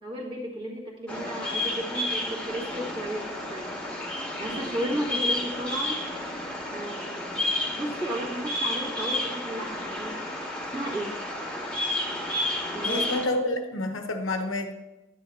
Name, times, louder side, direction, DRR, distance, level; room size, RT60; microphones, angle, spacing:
voice 1, 0.0-3.8 4.2-6.0 6.7-10.2 10.7-11.2 12.7-13.1, right 1 dB, 25° right, -6 dB, 2.1 m, -34 dB
Bird vocalization bird call bird song, 1.1-13.2, left 1 dB, 5° left, 1.4 m, -31 dB
voice 2, 12.8-14.7, left 2 dB, 90° left, 5 dB, 1.0 m, -29 dB
11.0 x 9.6 x 2.8 m, 1.0 s
head